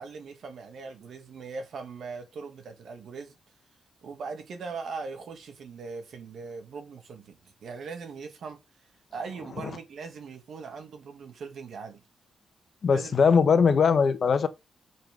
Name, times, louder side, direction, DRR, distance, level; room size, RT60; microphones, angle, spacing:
voice 1, 0.0-3.4 4.0-8.6 9.1-12.0 12.9-13.1, right 4 dB, 70° right, 2.2 m, -40 dB
voice 2, 12.8-14.5, left 6 dB, 50° left, 1.2 m, -20 dB
6.7 x 5.8 x 5.3 m
cardioid pair, 125°, 0 cm